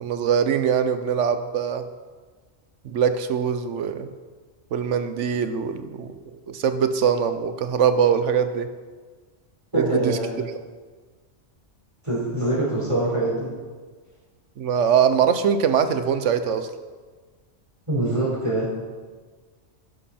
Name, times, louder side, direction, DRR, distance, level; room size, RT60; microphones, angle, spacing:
voice 1, 0.0-1.8 2.8-4.1 4.7-8.7 9.7-10.5 14.6-16.7, right 7 dB, 85° right, 10 dB, 1.1 m, -22 dB
voice 2, 9.7-10.3 12.0-13.5 17.9-18.7, right 1 dB, 25° right, -6 dB, 4.3 m, -24 dB
11.5 x 11.0 x 4.3 m, 1.4 s
omnidirectional pair, 1.2 m